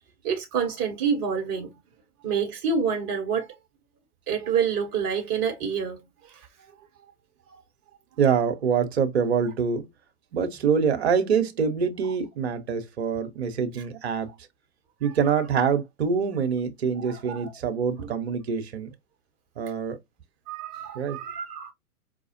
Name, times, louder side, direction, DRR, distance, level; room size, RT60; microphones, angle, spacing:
voice 1, 0.2-1.7 2.2-3.5 4.3-6.0 6.3-6.4 7.5-7.6 17.0-17.5 18.0-18.1 20.5-21.7, right 6 dB, 20° right, 1.1 m, -28 dB
voice 2, 8.2-9.9 10.3-14.3 15.0-18.9 19.6-20.0 20.9-21.2, right 6 dB, 45° right, 1.0 m, -25 dB
5.0 x 2.3 x 2.8 m
figure-of-eight pair, 115°, 45 cm